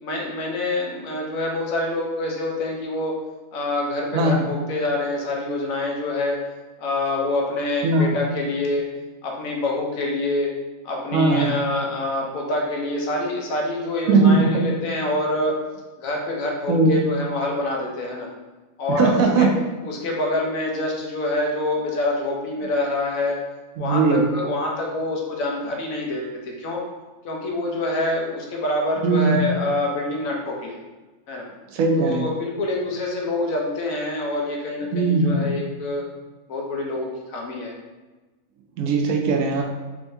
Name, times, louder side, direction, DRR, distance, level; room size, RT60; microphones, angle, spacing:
voice 1, 0.0-3.2 3.5-6.4 6.8-8.9 9.2-10.6 10.8-15.6 16.0-18.3 18.8-19.5 19.8-23.4 23.8-26.8 27.2-30.8 31.3-31.5 32.0-36.0 36.5-37.7, left 2 dB, 80° left, -1 dB, 1.2 m, -26 dB
voice 2, 11.1-11.5 14.1-14.6 16.7-17.0 18.9-19.5 23.8-24.2 29.0-29.4 31.7-32.2 34.9-35.5 38.8-39.6, right 3 dB, 80° right, 1 dB, 1.0 m, -19 dB
3.5 x 3.4 x 2.6 m, 1.2 s
omnidirectional pair, 1.5 m